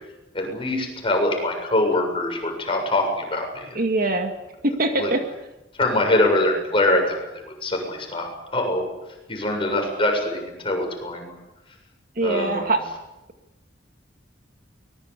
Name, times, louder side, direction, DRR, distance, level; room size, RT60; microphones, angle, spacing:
voice 1, 0.3-3.8 4.9-5.1 5.8-8.9 9.3-11.4 12.2-12.7, left 1 dB, 30° left, 2 dB, 7.2 m, -23 dB
voice 2, 3.7-4.3 4.6-5.2 12.2-12.8, right 2 dB, 50° right, 5 dB, 2.2 m, -22 dB
23.5 x 21.0 x 8.4 m, 0.98 s
head